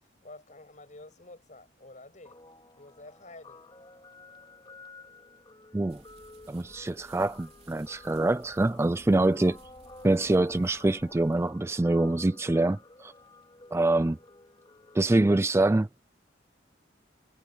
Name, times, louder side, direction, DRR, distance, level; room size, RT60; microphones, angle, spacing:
voice 1, 0.0-2.4 2.8-3.8, left 2 dB, 40° left, 6.2 m, -50 dB
Guitar, 2.2-15.0, left 3 dB, 25° left, 2.7 m, -52 dB
sound 1, 5.9-11.5, right 2 dB, 35° right, 4.0 m, -56 dB
voice 2, 6.5-9.6 10.0-13.1 13.7-14.2 14.9-15.9, right 2 dB, 15° right, 0.3 m, -25 dB
head